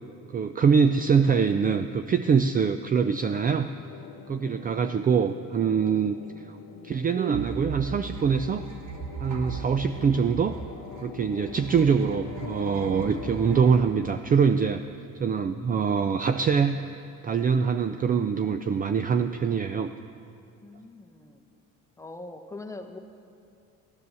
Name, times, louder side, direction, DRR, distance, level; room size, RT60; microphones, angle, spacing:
voice 1, 0.3-3.7 4.3-6.2 6.5-6.6 6.8-8.6 9.2-10.6 11.0-14.8 15.2-16.8 17.2-19.9, right 6 dB, 25° right, 9 dB, 0.4 m, -24 dB
sound 1, 3.4-13.7, left 8 dB, 80° left, 0.9 m, -45 dB
sound 2, 7.3-14.8, right 5 dB, 60° right, 1.6 m, -40 dB
voice 2, 20.6-21.5 22.0-23.0, left 2 dB, 10° left, 4 dB, 1.0 m, -43 dB
15.0 x 9.4 x 6.9 m, 2.5 s
cardioid pair, 115°, 32 cm